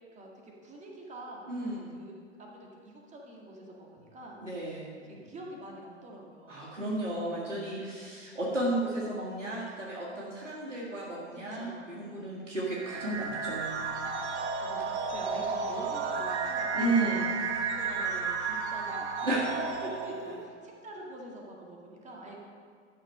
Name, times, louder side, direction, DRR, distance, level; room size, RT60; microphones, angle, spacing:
voice 1, 0.1-1.5 1.9-6.7 11.3-11.8 12.2-12.4 14.1-17.1 17.7-19.3 19.6-19.7 20.1-22.4, right 1 dB, 20° right, -1 dB, 1.9 m, -46 dB
voice 2, 1.5-2.0 4.4-4.9 6.5-13.9 16.7-17.3 19.2-19.5 19.8-20.1, right 2 dB, 85° right, -6 dB, 2.0 m, -33 dB
sound 1, 12.7-20.3, right 5 dB, 65° right, 1.1 m, -33 dB
12.0 x 6.1 x 5.3 m, 2.1 s
figure-of-eight pair, 90°, 36 cm